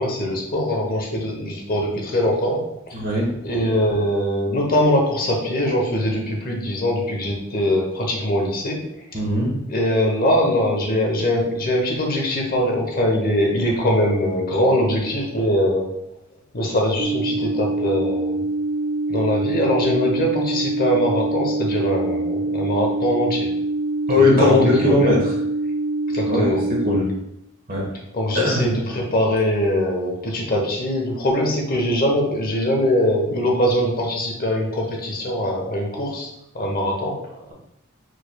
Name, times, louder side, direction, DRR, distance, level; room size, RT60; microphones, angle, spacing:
voice 1, 0.0-3.0 3.4-8.8 9.1-9.2 9.7-15.9 16.5-18.4 19.1-23.5 24.2-25.1 26.1-26.6 28.1-37.5, equal, 45° left, 0 dB, 0.9 m, -22 dB
voice 2, 2.9-3.3 9.1-9.5 24.1-25.3 26.1-27.1 27.7-27.9 28.3-28.7, left 2 dB, 45° right, -3 dB, 1.3 m, -19 dB
sound 1, 17.0-27.0, right 2 dB, 60° right, 0.7 m, -25 dB
4.6 x 4.6 x 2.3 m, 0.80 s
head